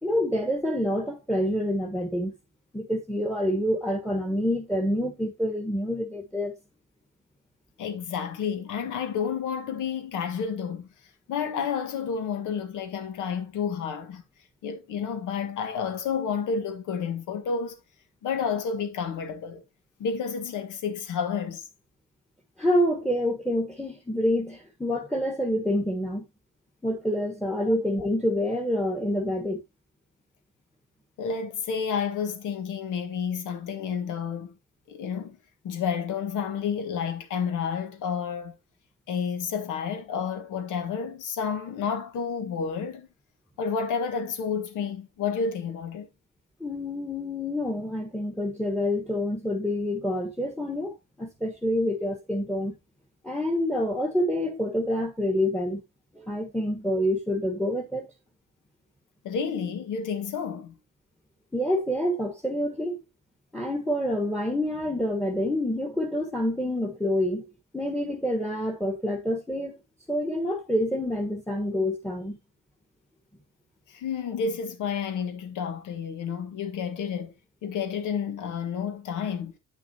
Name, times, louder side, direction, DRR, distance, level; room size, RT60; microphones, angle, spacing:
voice 1, 0.0-2.3 2.7-6.6 22.6-26.2 26.8-29.6 46.6-52.8 53.2-55.8 56.1-58.1 61.5-63.0 63.5-67.5 67.7-69.8 70.1-72.4, left 1 dB, 5° left, 1.3 m, -27 dB
voice 2, 7.8-10.9 11.3-14.2 14.6-17.7 18.2-19.6 20.0-21.7 27.7-27.8 31.2-34.5 34.9-35.4 35.6-38.5 39.1-43.1 43.6-46.1 59.2-60.8 73.9-77.3 77.6-79.5, left 6 dB, 85° left, 1.5 m, -30 dB
9.1 x 5.9 x 2.8 m
cardioid pair, 90°, 30 cm